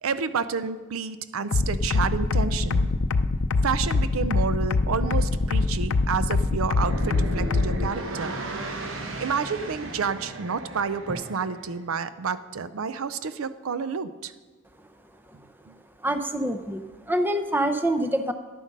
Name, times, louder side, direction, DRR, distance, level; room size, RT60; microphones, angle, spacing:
voice 1, 0.0-2.9 3.6-8.4 9.2-14.3 15.7-15.8, right 5 dB, 80° right, 13 dB, 0.5 m, -29 dB
sound 1, 1.5-7.9, left 3 dB, 70° left, 0.5 m, -23 dB
sound 2, 5.1-7.7 11.1-13.7 14.0-14.1, right 1 dB, 30° right, 1.2 m, -47 dB
sound 3, 6.6-11.7, right 1 dB, 65° right, 1.2 m, -35 dB
voice 2, 16.0-18.3, right 1 dB, 10° right, 7 dB, 0.6 m, -26 dB
11.0 x 9.0 x 5.3 m, 1.4 s
head